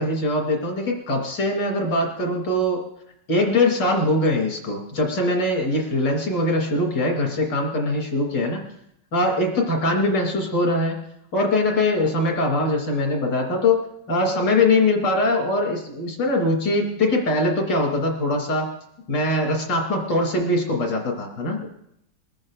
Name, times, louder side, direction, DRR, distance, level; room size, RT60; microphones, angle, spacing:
voice 1, 0.0-2.8 3.3-8.6 9.1-11.0 11.3-18.8 19.1-21.7, left 2 dB, 80° left, 0 dB, 3.4 m, -22 dB
22.0 x 14.0 x 2.4 m, 0.75 s
omnidirectional pair, 1.9 m